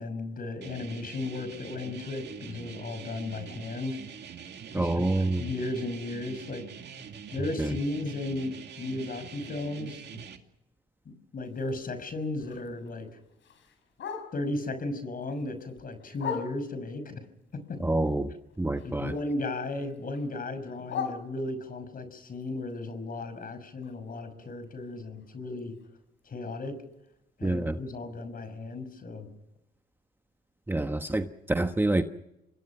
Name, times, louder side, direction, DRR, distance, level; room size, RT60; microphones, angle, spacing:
voice 1, 0.0-4.0 4.7-5.1 5.4-6.7 7.3-10.2 11.1-13.1 14.3-17.2 17.5-17.8 18.8-25.8 26.2-26.8 27.4-29.3, left 2 dB, 45° left, 10 dB, 5.8 m, -35 dB
sound 1, 0.6-10.4, right 7 dB, 60° right, 2.4 m, -44 dB
voice 2, 4.7-5.5 7.6-7.8 17.8-18.3 18.6-19.1 27.4-27.8 30.7-32.0, right 2 dB, 10° right, 7 dB, 1.2 m, -27 dB
Bark, 11.4-14.6 15.0-16.9 17.4-19.2 19.5-21.8 22.3-26.2 26.5-26.6 26.9-27.3 27.7-27.8 28.2-28.3 28.8-28.9, left 6 dB, 70° left, 5.6 m, -42 dB
27.5 x 21.0 x 6.0 m, 0.88 s
cardioid pair, 90°, 20 cm